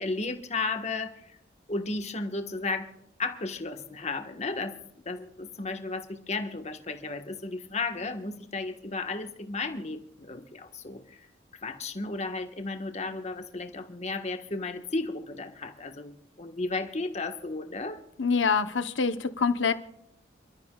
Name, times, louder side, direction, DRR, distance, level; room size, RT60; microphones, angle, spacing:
voice 1, 0.0-1.4 1.7-2.9 3.2-4.8 5.0-11.3 11.6-18.0, left 3 dB, 35° left, 6 dB, 1.5 m, -34 dB
voice 2, 18.2-19.7, left 5 dB, 70° left, 10 dB, 1.0 m, -25 dB
28.5 x 13.5 x 2.4 m, 0.78 s
head